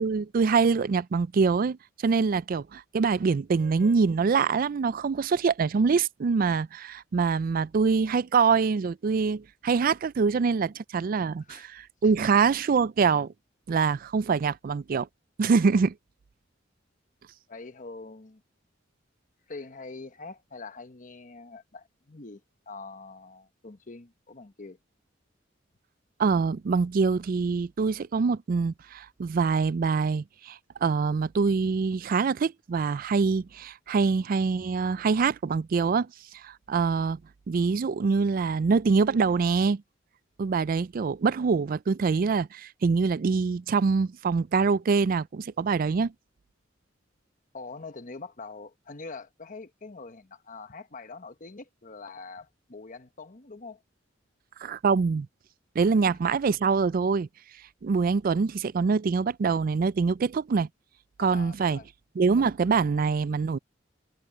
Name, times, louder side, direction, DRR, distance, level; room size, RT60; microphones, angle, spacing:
voice 1, 0.0-1.8 2.0-13.3 13.7-15.1 15.4-15.9 26.2-36.1 36.4-37.2 37.5-39.8 40.4-46.1 54.6-55.3 55.8-57.3 57.8-60.7 61.2-61.8 62.2-63.6, right 5 dB, 50° right, 0.4 m, -24 dB
voice 2, 17.5-18.4 19.5-24.8 47.5-53.8 55.8-56.0 61.2-61.9, left 3 dB, 45° left, 1.2 m, -44 dB
head